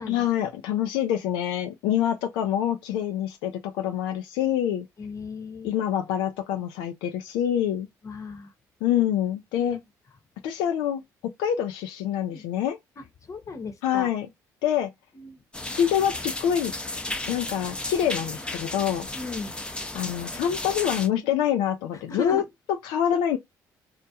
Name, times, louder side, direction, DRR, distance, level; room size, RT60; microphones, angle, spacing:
voice 1, 0.1-4.9 5.6-7.9 8.8-9.8 10.4-11.0 11.4-12.8 13.8-14.3 14.6-14.9 15.8-16.7 17.3-19.1 19.9-22.4 22.8-23.4, left 10 dB, 80° left, 0.4 m, -26 dB
voice 2, 5.0-5.7 8.0-8.5 9.6-9.8 12.3-12.4 13.3-14.1 15.1-15.4 19.1-19.6 22.1-22.4, left 4 dB, 40° left, 0.9 m, -36 dB
sound 1, 15.5-21.1, left 2 dB, 10° left, 0.6 m, -34 dB
2.3 x 2.1 x 2.7 m
supercardioid pair, 65°, 8 cm